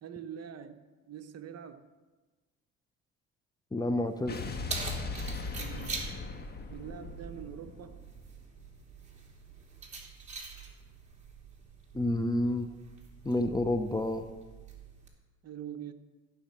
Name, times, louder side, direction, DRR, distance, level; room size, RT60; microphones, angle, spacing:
voice 1, 0.0-1.8 5.6-6.0 6.7-8.0 15.4-15.9, right 8 dB, 45° right, 7 dB, 1.0 m, -44 dB
voice 2, 3.7-4.4 11.9-12.7 13.2-14.3, left 1 dB, 10° left, 8 dB, 0.8 m, -29 dB
Keys jangling, 4.0-15.1, right 4 dB, 20° right, 3.1 m, -45 dB
Explosion, 4.3-8.6, left 3 dB, 30° left, 1.4 m, -39 dB
15.0 x 6.5 x 7.3 m, 1.3 s
supercardioid pair, 100°, 35 cm